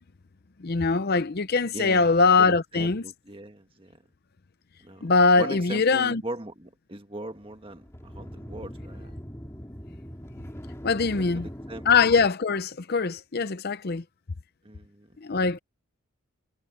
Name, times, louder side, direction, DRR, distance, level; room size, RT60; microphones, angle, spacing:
voice 1, 0.6-3.0 5.0-6.2 10.8-11.5 11.9-14.0 15.2-15.6, left 4 dB, 45° left, 0.6 m, -22 dB
voice 2, 1.7-2.1 2.4-3.9 4.8-5.1 5.3-9.2 11.1-11.9 14.6-15.2, right 1 dB, 25° right, 1.6 m, -40 dB
sound 1, 7.3-12.3, equal, 10° left, 2.4 m, -41 dB
head